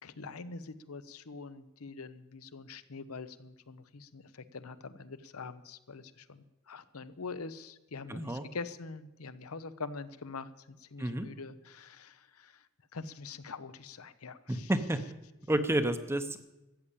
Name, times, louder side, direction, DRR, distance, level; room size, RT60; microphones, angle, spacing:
voice 1, 0.0-12.7 12.9-14.7, left 4 dB, 80° left, 13 dB, 0.8 m, -44 dB
voice 2, 8.1-8.5 11.0-11.3 14.5-15.0 15.5-16.4, right 1 dB, 10° right, 10 dB, 0.8 m, -30 dB
14.0 x 8.8 x 8.4 m, 0.98 s
head